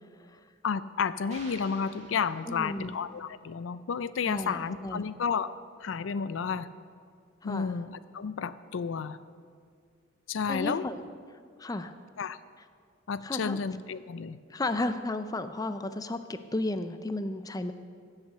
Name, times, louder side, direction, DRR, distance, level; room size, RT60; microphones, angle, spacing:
voice 1, 0.6-6.7 7.4-9.2 10.3-10.9 12.2-12.4 13.1-14.4, left 6 dB, 80° left, 15 dB, 0.4 m, -31 dB
sound 1, 1.3-3.0, right 2 dB, 35° right, 2.0 m, -50 dB
voice 2, 2.5-3.0 4.2-5.0 7.4-7.7 10.5-11.0 11.6-11.9 13.2-13.6 14.5-17.7, left 2 dB, 20° left, 10 dB, 0.5 m, -33 dB
15.5 x 5.8 x 6.6 m, 2.1 s
head